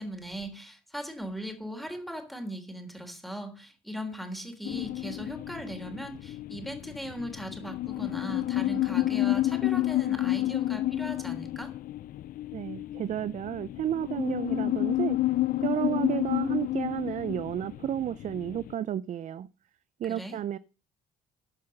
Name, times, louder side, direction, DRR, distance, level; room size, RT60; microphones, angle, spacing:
voice 1, 0.0-11.7 20.1-20.4, equal, ahead, 3.5 m, -39 dB
sound 1, 4.6-18.7, left 15 dB, 55° left, 0.4 m, -30 dB
voice 2, 12.5-15.2 15.6-19.5 20.0-20.6, right 10 dB, 45° right, 0.5 m, -32 dB
14.5 x 5.7 x 6.5 m
cardioid pair, 110°, 17 cm